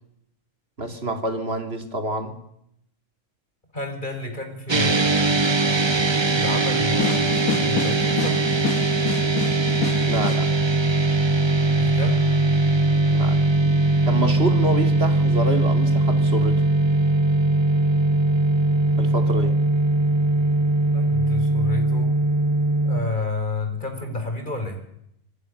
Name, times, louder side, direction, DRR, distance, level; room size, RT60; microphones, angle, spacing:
voice 1, 0.8-2.4 10.1-10.9 13.1-13.5 14.1-16.6 19.0-19.6, right 2 dB, 45° right, 7 dB, 3.3 m, -27 dB
voice 2, 3.7-5.4 6.3-8.4 11.8-12.2 20.9-22.1 22.8-24.8, left 2 dB, 35° left, 5 dB, 5.1 m, -30 dB
sound 1, 4.7-23.0, right 2 dB, 25° right, 0.8 m, -20 dB
sound 2, 7.0-10.4, left 8 dB, 80° left, 2.2 m, -29 dB
25.5 x 25.0 x 6.8 m, 0.77 s
omnidirectional pair, 1.5 m